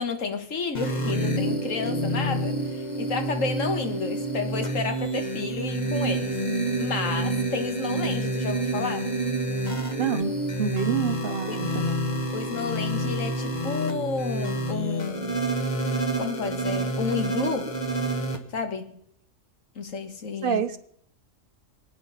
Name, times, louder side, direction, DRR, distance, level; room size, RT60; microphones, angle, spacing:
voice 1, 0.0-6.4 6.8-9.1 11.5-11.7 12.3-15.5 16.2-17.7 18.5-18.9 19.8-20.6, left 4 dB, 80° left, 1.8 m, -31 dB
sound 1, 0.7-18.4, right 1 dB, 35° left, 1.5 m, -28 dB
voice 2, 10.0-12.0 20.4-20.8, right 7 dB, 50° right, 0.8 m, -27 dB
24.5 x 9.0 x 5.6 m
omnidirectional pair, 1.3 m